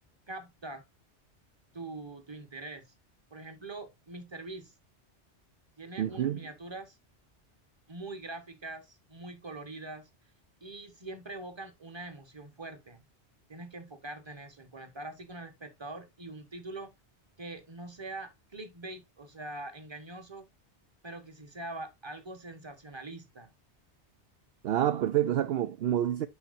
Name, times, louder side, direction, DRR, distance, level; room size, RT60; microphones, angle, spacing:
voice 1, 0.3-0.8 1.7-2.9 3.3-4.7 5.8-7.0 7.9-10.1 10.6-13.0 13.5-16.9 17.4-20.5 21.0-23.5, right 2 dB, 25° right, 1.4 m, -43 dB
voice 2, 6.0-6.5 24.6-26.3, right 11 dB, 65° right, 0.7 m, -28 dB
10.5 x 4.3 x 2.6 m
omnidirectional pair, 1.2 m